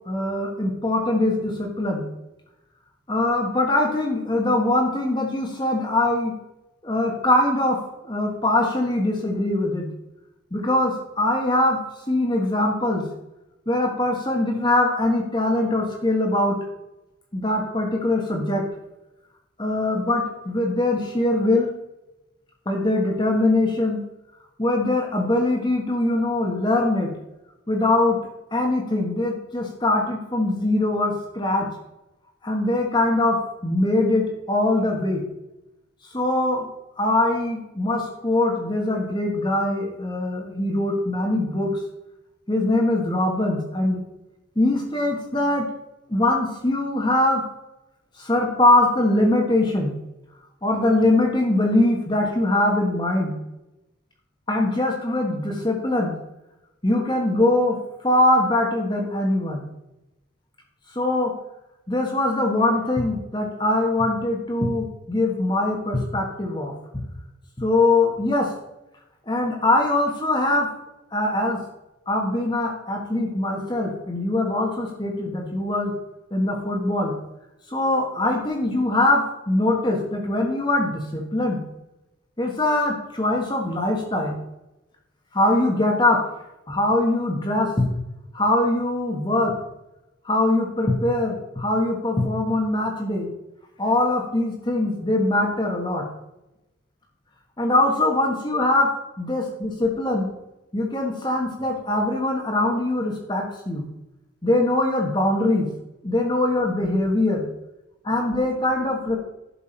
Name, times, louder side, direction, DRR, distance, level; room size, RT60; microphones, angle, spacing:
voice 1, 0.1-2.1 3.1-6.3 6.8-7.8 8.0-9.9 10.5-11.8 12.1-13.1 13.7-16.6 17.3-18.7 19.6-21.7 22.6-24.0 24.6-27.1 27.7-28.2 28.5-31.7 32.4-35.2 36.1-36.7 37.0-41.8 42.5-44.0 44.5-45.7 46.1-47.4 48.2-49.9 50.6-53.4 54.5-56.1 56.8-57.8 58.0-59.6 60.9-61.3 61.9-66.7 67.6-68.5 69.3-70.7 71.1-71.6 72.1-75.9 76.3-77.1 77.7-81.6 82.4-84.4 85.3-86.2 86.7-87.9 88.3-89.5 90.2-93.3 93.8-96.0 97.6-98.9 99.2-100.3 100.7-103.9 104.4-105.7 106.0-107.5 108.0-109.2, left 2 dB, 25° left, 0 dB, 1.4 m, -22 dB
11.5 x 6.1 x 4.5 m, 0.94 s
head